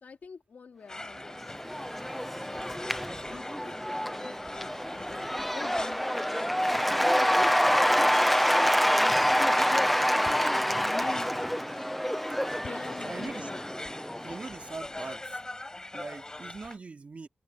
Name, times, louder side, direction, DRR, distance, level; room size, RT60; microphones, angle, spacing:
voice 1, 0.0-9.2 9.7-11.3 12.6-13.6, left 5 dB, 70° left, 2.6 m, -46 dB
sound 1, 0.9-16.8, left 2 dB, 20° left, 6.3 m, -43 dB
Cheering / Applause / Crowd, 1.2-14.6, equal, ahead, 0.5 m, -27 dB
voice 2, 13.0-13.5 14.2-15.4 15.9-17.3, right 4 dB, 45° right, 2.4 m, -41 dB
wide cardioid pair, 80°, 3 cm